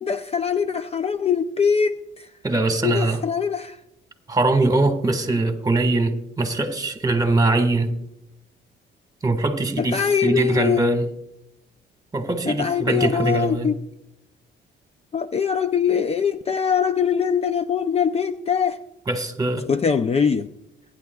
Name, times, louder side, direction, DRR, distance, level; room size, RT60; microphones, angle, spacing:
voice 1, 0.0-2.3 2.8-3.8 9.8-10.9 12.5-13.8 15.1-18.8 19.7-20.5, left 7 dB, 30° left, 0.5 m, -22 dB
voice 2, 2.4-3.2 4.3-7.9 9.2-11.1 12.1-13.7 19.1-19.7, right 2 dB, 20° right, 1.6 m, -22 dB
22.5 x 9.7 x 2.3 m
cardioid pair, 90°, 20 cm